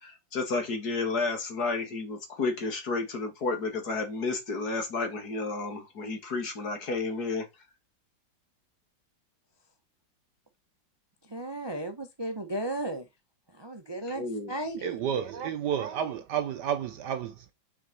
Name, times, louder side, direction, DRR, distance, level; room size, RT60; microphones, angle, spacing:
voice 1, 0.0-7.5 14.1-14.5, left 3 dB, 50° left, 2.3 m, -31 dB
voice 2, 11.3-13.1 13.5-15.0, right 1 dB, 20° right, 0.7 m, -35 dB
voice 3, 14.8-17.5, right 9 dB, 65° right, 1.2 m, -31 dB
7.0 x 6.4 x 4.3 m
omnidirectional pair, 2.2 m